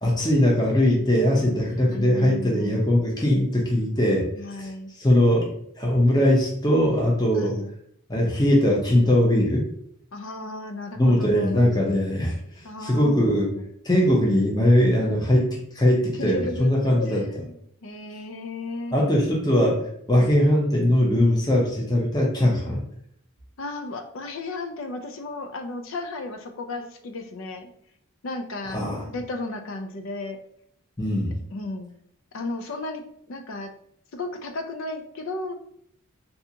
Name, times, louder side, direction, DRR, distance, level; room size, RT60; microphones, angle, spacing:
voice 1, 0.0-4.3 4.6-4.7 5.0-5.5 5.8-7.6 8.1-9.6 11.0-13.5 13.8-17.2 18.9-19.8 20.1-22.8 28.7-29.0 31.0-31.4, left 1 dB, 20° left, -2 dB, 0.7 m, -20 dB
voice 2, 1.9-3.1 4.4-4.9 7.3-7.7 10.1-11.7 12.6-13.7 16.2-19.0 23.6-27.7 28.2-30.4 31.5-31.9 32.3-33.7 34.1-35.6, left 2 dB, 65° left, 6 dB, 0.5 m, -34 dB
3.4 x 2.7 x 2.7 m, 0.67 s
head